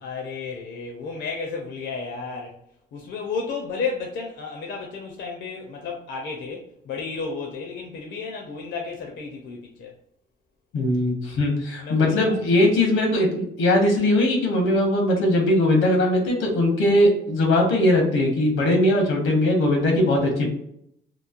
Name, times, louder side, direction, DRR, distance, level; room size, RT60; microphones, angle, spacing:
voice 1, 0.0-2.6 2.9-9.9 11.8-12.4, left 4 dB, 65° left, 0.5 m, -32 dB
voice 2, 10.7-20.5, left 1 dB, 85° left, 0.9 m, -20 dB
3.0 x 2.0 x 2.4 m
cardioid pair, 90°, 20 cm